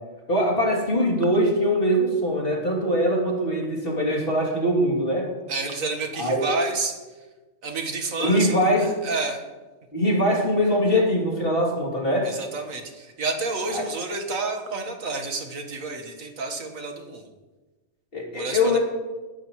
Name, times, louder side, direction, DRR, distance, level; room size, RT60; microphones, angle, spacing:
voice 1, 0.3-5.3 6.2-6.5 8.2-8.9 9.9-12.3 13.7-13.8 18.1-18.8, equal, 45° left, -2 dB, 3.2 m, -22 dB
voice 2, 5.5-6.9 7.6-8.5 8.8-9.4 12.2-17.3 18.3-18.8, right 3 dB, 80° right, 4 dB, 1.9 m, -30 dB
20.0 x 11.5 x 3.1 m, 1.2 s
omnidirectional pair, 1.4 m